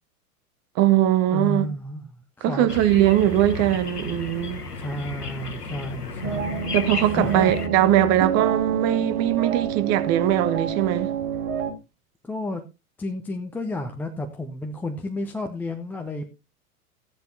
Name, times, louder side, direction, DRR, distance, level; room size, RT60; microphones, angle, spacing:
voice 1, 0.8-1.7 2.4-4.6 6.7-11.1, right 12 dB, 35° right, 1.2 m, -21 dB
voice 2, 1.3-2.7 4.7-6.6 7.2-7.5 12.2-12.6 13.0-16.3, left 1 dB, 5° left, 0.5 m, -31 dB
sound 1, 2.7-7.7, left 2 dB, 85° left, 1.2 m, -33 dB
sound 2, 6.2-11.7, right 7 dB, 55° right, 2.4 m, -28 dB
14.5 x 10.0 x 2.6 m
figure-of-eight pair, 95°, 45 cm